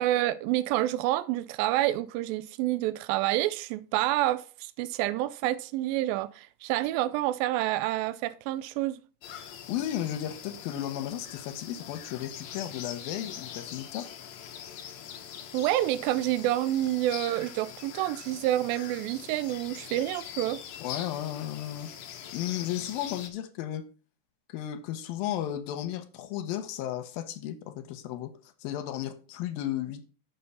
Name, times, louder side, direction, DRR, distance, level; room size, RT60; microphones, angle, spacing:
voice 1, 0.0-9.0 15.5-20.6, right 14 dB, 85° right, 2.3 m, -28 dB
sound 1, 9.2-23.3, left 9 dB, 70° left, 1.7 m, -43 dB
voice 2, 9.7-14.1 20.8-23.8 24.5-28.3 28.6-30.0, left 12 dB, 85° left, 2.6 m, -34 dB
6.9 x 6.5 x 5.5 m
omnidirectional pair, 4.1 m